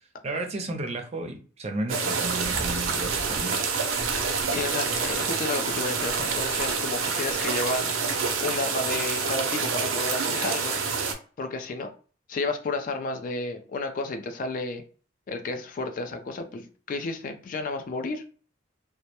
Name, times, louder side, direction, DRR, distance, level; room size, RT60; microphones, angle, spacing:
voice 1, 0.2-3.7, right 2 dB, 35° right, 5 dB, 0.4 m, -33 dB
sound 1, 1.9-11.1, right 5 dB, 90° right, 0.5 m, -27 dB
voice 2, 4.5-7.9 8.4-11.0 11.4-11.9 12.3-14.8 15.3-18.2, left 3 dB, 45° left, 6 dB, 0.3 m, -32 dB
2.1 x 2.0 x 2.8 m, 0.39 s
head